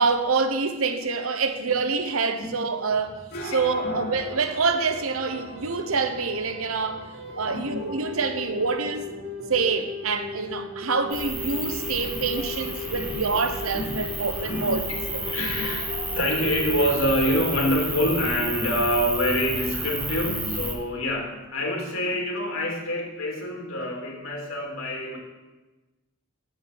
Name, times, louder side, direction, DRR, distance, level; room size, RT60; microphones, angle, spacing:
voice 1, 0.0-7.0 7.4-9.1 9.5-15.3, right 4 dB, 85° right, 1.0 m, -26 dB
sound 1, 1.0-1.1 1.5-1.6 1.9-2.0 2.4-2.5 2.9-3.0 3.4-3.5 3.8-3.9 4.3-17.4, left 3 dB, 55° right, 1.6 m, -38 dB
sound 2, 2.9-20.4, equal, 45° left, 2.2 m, -45 dB
voice 2, 3.5-3.9 7.2-8.2 8.7-8.8 12.1-12.4 12.9-13.1 13.7-13.9 14.4-25.2, equal, 80° left, 2.9 m, -27 dB
sound 3, 11.1-20.8, right 1 dB, 5° right, 1.3 m, -32 dB
9.1 x 7.9 x 7.0 m
head